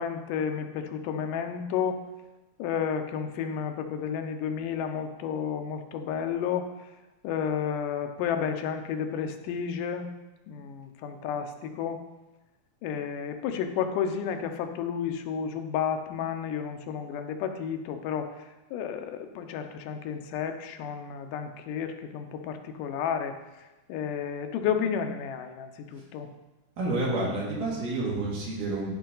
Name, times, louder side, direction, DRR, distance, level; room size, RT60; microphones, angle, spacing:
voice 1, 0.0-2.0 2.6-6.9 7.2-10.1 10.5-12.0 12.8-26.3, left 7 dB, 85° left, 6 dB, 2.3 m, -32 dB
voice 2, 26.8-29.0, right 2 dB, 80° right, -5 dB, 3.7 m, -29 dB
13.0 x 5.2 x 3.9 m, 1.1 s
omnidirectional pair, 3.7 m